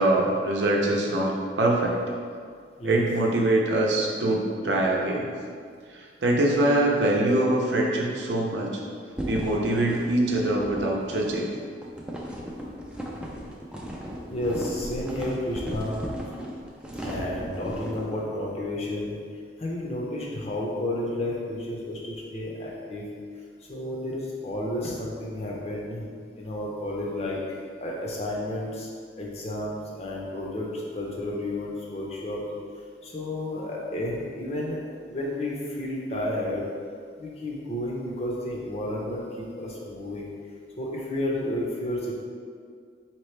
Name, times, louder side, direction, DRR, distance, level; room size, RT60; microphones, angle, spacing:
voice 1, 0.0-2.0 2.8-5.3 5.9-8.8 9.3-11.5, right 1 dB, 85° right, -1 dB, 0.6 m, -24 dB
sound 1, 9.2-18.1, equal, 5° right, 0.4 m, -36 dB
voice 2, 14.3-15.9 17.0-19.2 19.6-23.0 23.6-26.0 26.4-27.4 27.8-32.4 33.0-34.8 35.1-36.7 37.2-40.3 40.8-42.2, left 1 dB, 35° left, -3 dB, 0.7 m, -31 dB
4.1 x 2.9 x 3.2 m, 2.1 s
head